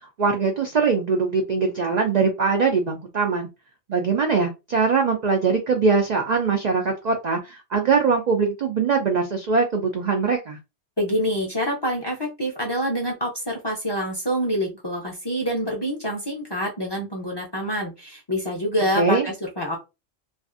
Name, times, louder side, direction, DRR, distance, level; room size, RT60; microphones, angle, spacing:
voice 1, 0.2-3.5 3.9-10.6 19.0-19.3, right 4 dB, 60° right, 3 dB, 0.4 m, -22 dB
voice 2, 11.0-19.8, equal, 30° left, -1 dB, 0.5 m, -26 dB
2.5 x 2.4 x 2.4 m, 0.26 s
omnidirectional pair, 1.2 m